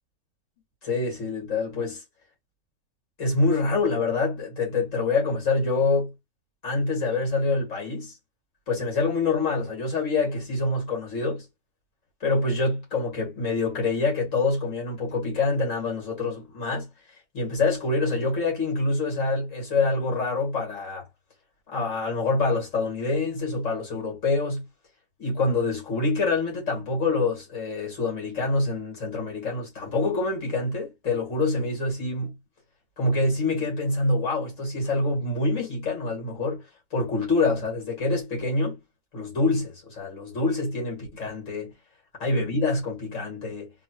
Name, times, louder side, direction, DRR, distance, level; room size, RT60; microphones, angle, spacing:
voice 1, 0.8-2.0 3.2-6.1 6.6-8.1 8.7-11.4 12.2-16.9 17.3-21.0 21.7-24.6 25.2-32.4 33.0-36.6 36.9-38.8 39.1-41.7 42.2-43.7, left 3 dB, 60° left, 2.3 m, -26 dB
3.7 x 2.4 x 2.9 m
omnidirectional pair, 1.5 m